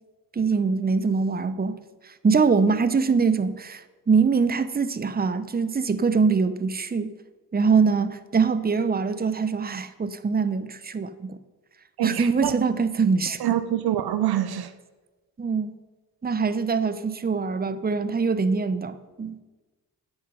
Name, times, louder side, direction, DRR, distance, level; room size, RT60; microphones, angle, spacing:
voice 1, 0.3-1.8 2.0-7.1 7.5-11.4 12.0-13.4 15.4-15.8 16.2-19.4, right 5 dB, 20° right, 0.7 m, -23 dB
voice 2, 12.0-12.5 13.4-14.7, right 12 dB, 65° right, 0.7 m, -25 dB
8.7 x 7.7 x 5.3 m
supercardioid pair, 40°, 42 cm